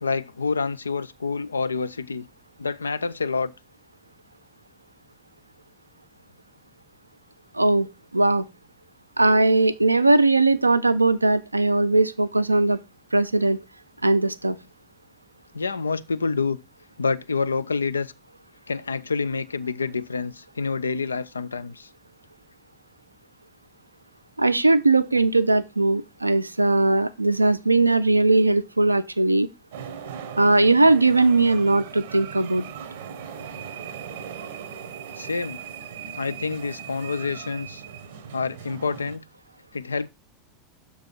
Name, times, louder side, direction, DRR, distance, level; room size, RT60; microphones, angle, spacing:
voice 1, 0.0-2.3 2.6-3.5 15.5-16.6 17.0-18.1 18.7-21.9 35.2-35.6 36.1-37.8 38.3-39.2 39.7-40.1, left 4 dB, 80° left, 0.4 m, -27 dB
voice 2, 7.5-8.4 9.2-12.8 13.1-13.6 14.0-14.6 24.4-29.5 30.4-32.6, right 2 dB, 85° right, 0.4 m, -19 dB
sound 1, 29.7-39.2, right 8 dB, 65° right, 0.8 m, -39 dB
6.6 x 4.6 x 4.3 m
figure-of-eight pair, 85°, 0 cm